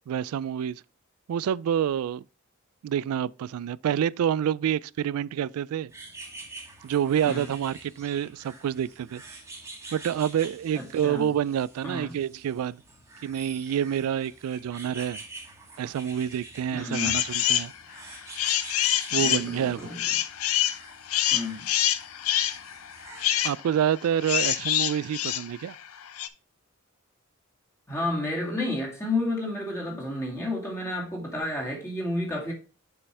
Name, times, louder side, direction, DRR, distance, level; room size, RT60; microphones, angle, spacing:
voice 1, 0.1-0.8 1.3-2.2 2.8-5.9 6.8-9.2 9.9-12.8 13.2-15.2 15.8-17.7 19.1-19.8 23.4-25.8, right 9 dB, 85° right, 0.3 m, -27 dB
sound 1, 5.9-23.5, right 2 dB, 15° right, 1.5 m, -47 dB
voice 2, 10.7-11.3 11.8-12.1 16.7-17.2 19.1-20.0 21.3-21.7 27.9-32.5, left 1 dB, 15° left, 2.4 m, -31 dB
sound 2, 16.9-17.7 18.1-26.3, left 12 dB, 75° left, 0.6 m, -26 dB
6.9 x 5.4 x 3.3 m
head